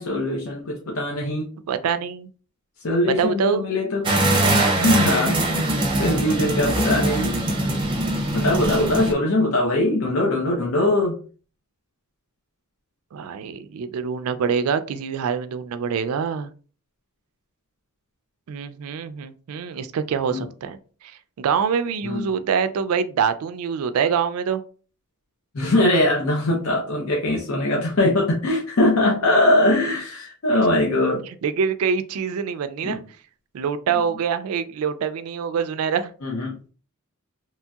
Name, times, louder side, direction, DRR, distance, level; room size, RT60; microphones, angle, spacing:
voice 1, 0.0-1.5 2.8-4.0 4.7-5.7 6.0-7.3 8.3-11.2 20.3-20.4 22.0-22.3 25.5-31.2 32.8-33.0 36.2-36.5, left 1 dB, 75° left, 0.7 m, -21 dB
voice 2, 1.7-2.3 3.0-3.6 13.1-16.5 18.5-20.8 21.4-24.6 30.5-30.6 31.4-33.0 33.5-36.1, right 6 dB, 85° right, 0.3 m, -25 dB
sound 1, 4.0-9.1, right 1 dB, 25° right, 0.6 m, -22 dB
3.0 x 2.7 x 2.3 m
head